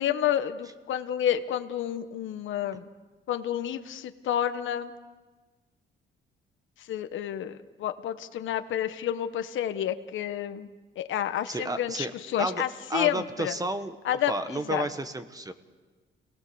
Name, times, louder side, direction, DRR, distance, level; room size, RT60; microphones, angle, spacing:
voice 1, 0.0-2.9 3.3-4.9 6.9-10.7 11.0-13.5 14.0-14.9, left 10 dB, 75° left, 9 dB, 1.3 m, -30 dB
voice 2, 11.5-12.1 12.4-12.6 12.9-13.9 14.3-15.5, right 2 dB, 20° right, 9 dB, 1.6 m, -31 dB
28.0 x 19.0 x 7.1 m, 1.3 s
cardioid pair, 90°, 20 cm